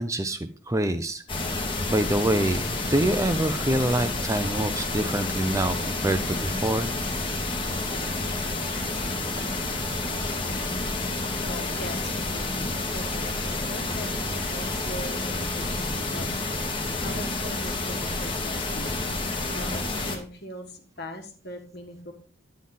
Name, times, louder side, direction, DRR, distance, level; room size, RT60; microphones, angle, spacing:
voice 1, 0.0-6.9 10.9-11.4, right 1 dB, 15° right, 9 dB, 0.5 m, -26 dB
sound 1, 1.3-20.2, left 2 dB, 25° left, 1.3 m, -29 dB
voice 2, 11.4-22.1, left 1 dB, 50° left, 3 dB, 1.5 m, -41 dB
10.0 x 7.3 x 3.9 m, 0.41 s
head